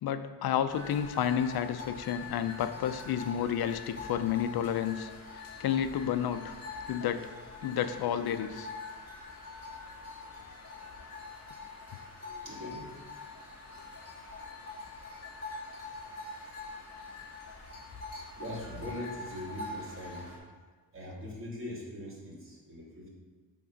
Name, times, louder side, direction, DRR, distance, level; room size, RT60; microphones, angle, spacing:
voice 1, 0.0-6.5 6.9-7.3 7.6-8.7, left 9 dB, 70° left, 10 dB, 0.6 m, -31 dB
sound 1, 0.7-20.4, left 3 dB, 40° left, 2.4 m, -44 dB
voice 2, 12.2-12.9 18.3-20.3 20.9-23.1, left 1 dB, 35° right, -3 dB, 2.3 m, -41 dB
8.3 x 3.7 x 5.7 m, 1.4 s
cardioid pair, 120°, 38 cm